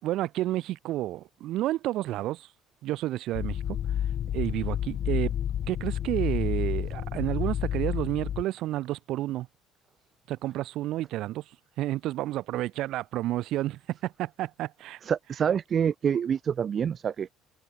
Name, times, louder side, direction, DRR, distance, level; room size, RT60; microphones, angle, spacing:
voice 1, 0.0-2.5 2.8-3.8 4.3-5.3 5.7-9.5 10.3-11.4 11.8-15.0, right 15 dB, 65° right, 4.8 m, -30 dB
sound 1, 3.3-8.4, left 10 dB, 45° left, 4.8 m, -30 dB
voice 2, 15.0-17.3, right 8 dB, 35° right, 1.8 m, -27 dB
cardioid pair, 125°, 0 cm